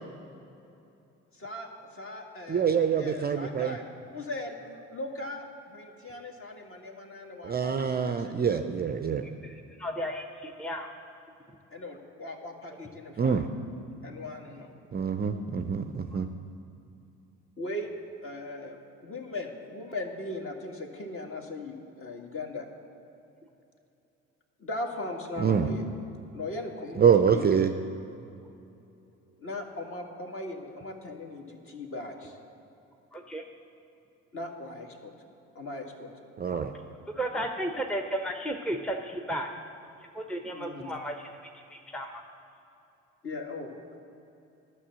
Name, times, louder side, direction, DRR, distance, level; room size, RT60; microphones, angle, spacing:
voice 1, 1.3-2.7 3.0-3.9 4.1-8.3 11.7-13.4 14.0-14.7 17.6-17.9 18.2-22.7 24.6-25.8 26.3-27.5 29.4-32.4 34.3-35.1 35.6-36.1 40.5-40.9 43.2-43.8, left 2 dB, 35° left, 2 dB, 1.7 m, -39 dB
voice 2, 2.5-3.8 7.4-9.3 13.2-13.5 14.9-16.3 25.4-25.7 27.0-27.7 36.4-36.7, right 7 dB, 25° right, 8 dB, 0.5 m, -25 dB
voice 3, 9.4-10.9 33.1-33.4 37.2-39.5 40.1-41.2 41.7-42.2, right 1 dB, ahead, 2 dB, 0.8 m, -33 dB
11.0 x 6.1 x 7.5 m, 2.8 s
hypercardioid pair, 55°, 36 cm